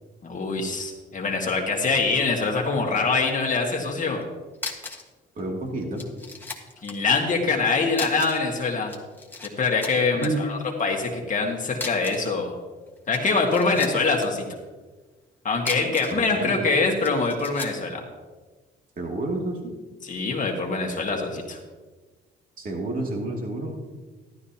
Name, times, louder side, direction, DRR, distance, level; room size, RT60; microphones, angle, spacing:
voice 1, 0.2-4.2 6.8-8.9 9.4-12.5 13.1-14.5 15.4-18.0 20.0-21.6, left 4 dB, 40° left, 0 dB, 1.7 m, -24 dB
sound 1, 4.2-4.3 4.5-5.1 5.4-5.5 6.0-7.0 7.9-8.5 8.8-9.5 9.8-10.3 11.7-12.3 13.0-14.3 15.5-16.2 17.0-17.8, left 3 dB, 10° left, 1.5 m, -36 dB
voice 2, 5.4-6.0 10.1-10.5 13.7-13.8 16.1-16.6 19.0-19.7 22.6-23.8, right 2 dB, 45° right, 0 dB, 2.5 m, -30 dB
13.5 x 12.0 x 2.9 m, 1.3 s
cardioid pair, 90°, 20 cm